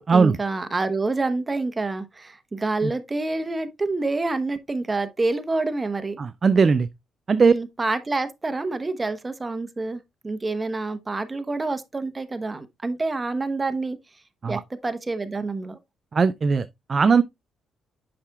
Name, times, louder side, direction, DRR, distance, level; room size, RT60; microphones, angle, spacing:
voice 1, 0.0-6.2 7.4-14.0 14.5-15.8, right 3 dB, 25° right, 1.0 m, -27 dB
voice 2, 6.2-6.9 7.3-7.5 14.4-14.6 16.1-17.2, right 5 dB, 40° right, 0.4 m, -19 dB
8.6 x 5.9 x 2.3 m
cardioid pair, 90°, 0 cm